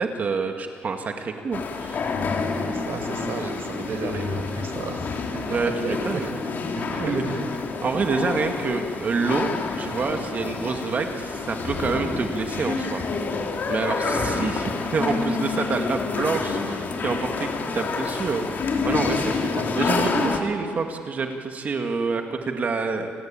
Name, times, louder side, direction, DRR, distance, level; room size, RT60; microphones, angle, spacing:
voice 1, 0.0-2.0 5.5-6.3 6.9-7.4 7.8-13.0 13.7-17.5 17.7-23.1, right 4 dB, 40° right, 4 dB, 2.0 m, -27 dB
sound 1, 1.5-20.4, left 4 dB, 50° left, 3.0 m, -28 dB
voice 2, 2.5-5.2 5.8-6.3 6.8-7.5 14.0-14.5, right 4 dB, 60° right, 6 dB, 4.5 m, -33 dB
29.0 x 19.0 x 9.0 m, 2.1 s
cardioid pair, 130°, 4 cm